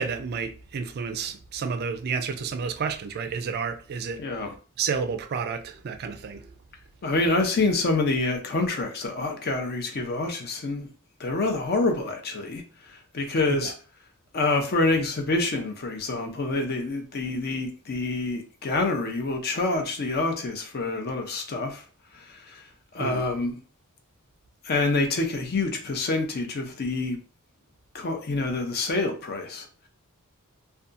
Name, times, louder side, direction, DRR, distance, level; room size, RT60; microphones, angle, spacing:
voice 1, 0.0-4.2 4.8-6.5 13.6-13.7 23.0-23.2, right 5 dB, 45° right, 0.3 m, -30 dB
voice 2, 4.2-4.5 7.0-10.9 11.2-12.6 12.9-13.7 14.3-21.8 22.1-22.6 22.9-23.6 24.6-27.2 27.9-29.7, left 3 dB, 45° left, 0.5 m, -27 dB
2.7 x 2.2 x 2.4 m
head